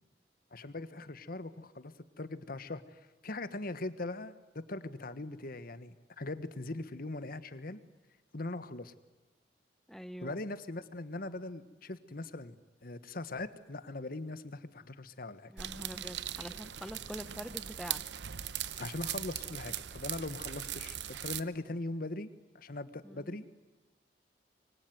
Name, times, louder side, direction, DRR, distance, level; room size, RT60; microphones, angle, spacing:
voice 1, 0.5-7.8 8.3-8.9 10.2-15.5 18.8-23.5, left 2 dB, 55° left, 12 dB, 1.4 m, -41 dB
voice 2, 9.9-10.4 15.5-18.0 23.0-23.4, equal, ahead, 13 dB, 1.0 m, -45 dB
sound 1, 15.6-21.4, right 11 dB, 90° right, 0.9 m, -40 dB
25.5 x 23.5 x 9.5 m, 1.2 s
head